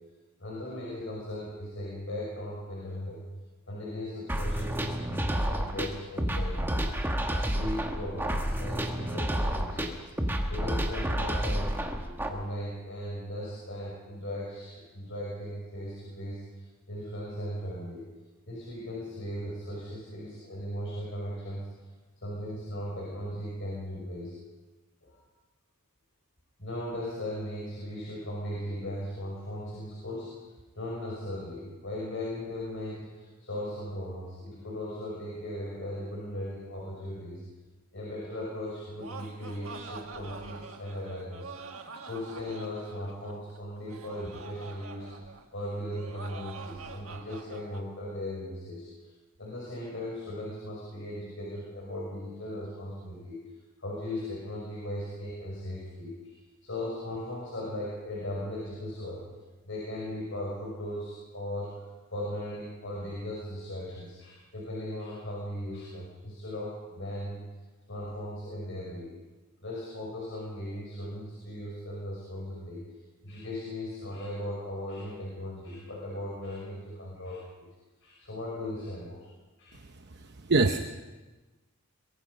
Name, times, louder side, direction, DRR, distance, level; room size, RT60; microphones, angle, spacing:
voice 1, 0.4-3.2 3.7-6.8 7.3-10.0 10.5-11.8 12.3-16.6 16.9-18.1 18.5-21.7 22.2-24.3 25.0-25.2 26.6-30.4 30.8-37.4 37.9-48.9 49.4-53.4 53.8-56.3 56.6-59.2 59.6-67.4 67.9-69.1 69.6-72.8 73.2-77.7 78.0-79.3 79.6-79.8, left 1 dB, 55° left, -4 dB, 5.6 m, -38 dB
sound 1, 4.3-12.3, equal, 10° right, 1.5 m, -30 dB
Laughter, 38.7-47.8, right 4 dB, 65° right, 1.7 m, -45 dB
voice 2, 79.9-80.8, right 3 dB, 50° right, 5 dB, 0.9 m, -26 dB
23.0 x 22.0 x 5.4 m, 1.2 s
head